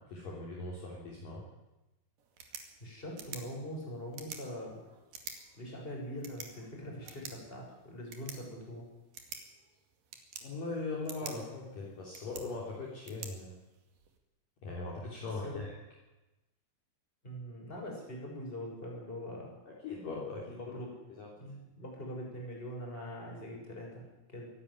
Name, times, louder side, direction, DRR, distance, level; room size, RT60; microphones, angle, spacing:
voice 1, 0.0-1.4 10.4-13.5 14.6-15.7 19.7-20.8 21.2-21.3, left 3 dB, 45° left, -3 dB, 4.5 m, -40 dB
sound 1, 2.2-14.2, right 6 dB, 50° right, 3.1 m, -50 dB
voice 2, 2.8-4.9 5.5-8.9 15.4-15.5 17.2-19.5 20.6-20.9 21.4-24.5, equal, 10° left, -1 dB, 6.3 m, -43 dB
24.5 x 11.5 x 9.7 m, 1.0 s
omnidirectional pair, 5.8 m